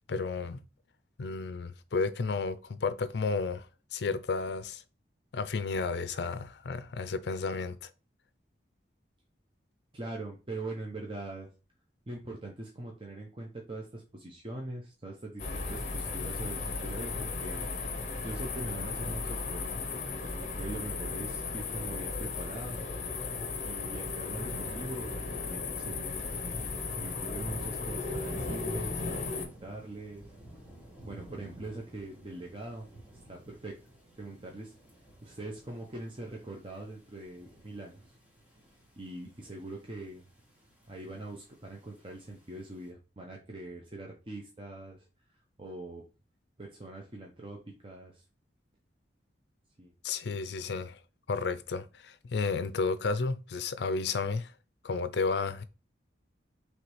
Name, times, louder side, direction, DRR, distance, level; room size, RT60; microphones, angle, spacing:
voice 1, 0.1-0.6 1.2-4.8 5.3-7.9 50.0-51.0 51.3-54.5 54.8-55.6, left 4 dB, 65° left, 0.4 m, -32 dB
voice 2, 9.9-11.5 12.1-17.7 18.2-20.0 20.6-22.9 23.6-26.4 26.9-30.3 31.0-32.9 33.3-33.8 34.2-34.7 35.2-38.1 39.0-40.3 40.9-45.0 45.6-46.0 46.6-48.2 49.8-49.9, right 2 dB, 30° right, 0.7 m, -42 dB
sound 1, 15.4-29.5, left 4 dB, 40° left, 0.8 m, -35 dB
sound 2, 24.2-42.9, right 1 dB, 10° right, 1.3 m, -53 dB
4.9 x 3.2 x 3.1 m
head